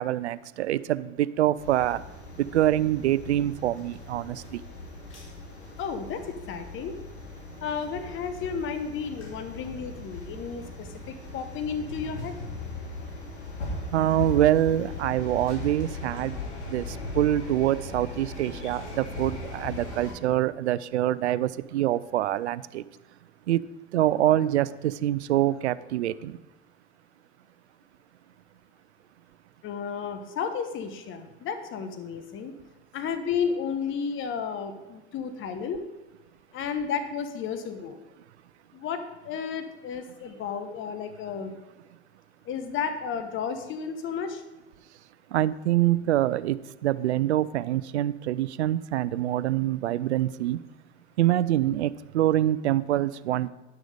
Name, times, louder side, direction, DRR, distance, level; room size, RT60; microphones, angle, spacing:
voice 1, 0.0-2.0 2.5-4.6 13.9-16.4 16.7-22.8 23.5-23.6 23.9-26.4 45.3-50.6 51.2-53.5, right 13 dB, 90° right, 18 dB, 0.5 m, -25 dB
sound 1, 1.6-20.1, left 3 dB, 85° left, 2.5 m, -39 dB
voice 2, 5.8-6.9 7.6-12.3 18.6-18.7 29.6-32.5 32.9-35.8 36.5-38.0 38.7-41.5 42.4-44.4, left 6 dB, 35° left, 9 dB, 1.1 m, -32 dB
10.5 x 6.3 x 5.0 m, 1.1 s
hypercardioid pair, 95°, 33 cm